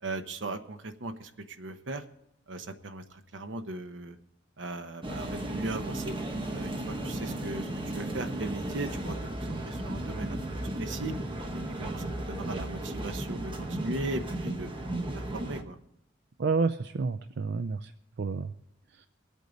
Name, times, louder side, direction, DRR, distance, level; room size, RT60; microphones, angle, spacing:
voice 1, 0.0-2.0 2.5-4.2 4.6-6.2 6.5-9.2 9.6-10.4 10.8-11.1 11.5-14.7 15.1-15.8, right 2 dB, 80° right, 8 dB, 0.9 m, -38 dB
sound 1, 5.0-15.6, right 1 dB, 25° right, 1.2 m, -35 dB
voice 2, 16.4-17.9 18.2-18.5 19.0-19.1, right 4 dB, 60° right, 9 dB, 0.5 m, -29 dB
24.5 x 8.3 x 4.0 m, 0.79 s
head